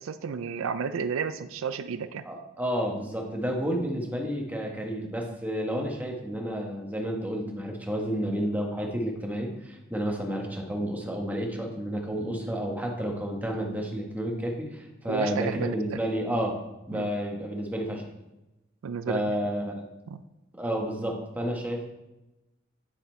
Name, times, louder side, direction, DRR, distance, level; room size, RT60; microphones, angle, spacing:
voice 1, 0.0-2.2 15.1-16.0 16.9-17.1 18.8-19.2 20.1-20.2, right 6 dB, 80° right, 12 dB, 0.4 m, -32 dB
voice 2, 2.2-16.6 16.9-18.0 19.1-19.9 20.6-21.9, equal, 10° right, 0 dB, 1.1 m, -31 dB
9.3 x 4.2 x 4.4 m, 0.97 s
head